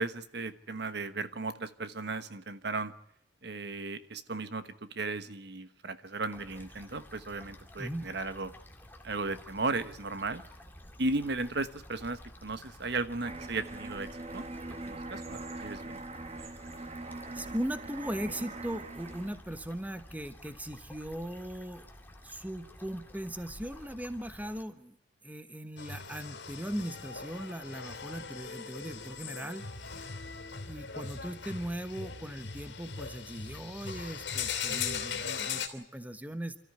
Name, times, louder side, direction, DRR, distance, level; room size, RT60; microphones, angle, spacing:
voice 1, 0.0-2.9 3.4-8.5 9.0-10.4 11.0-14.5 14.8-16.0, right 3 dB, 60° right, 11 dB, 1.2 m, -35 dB
sound 1, 6.3-24.6, left 1 dB, 10° left, 2.1 m, -52 dB
sound 2, 13.2-19.4, right 2 dB, 35° right, 1.2 m, -42 dB
voice 2, 17.3-21.8 22.2-25.0 25.2-29.7 30.6-36.6, right 1 dB, 10° right, 10 dB, 1.1 m, -39 dB
sound 3, 25.8-35.7, left 6 dB, 75° left, 2.9 m, -39 dB
28.0 x 14.0 x 9.4 m, 0.76 s
head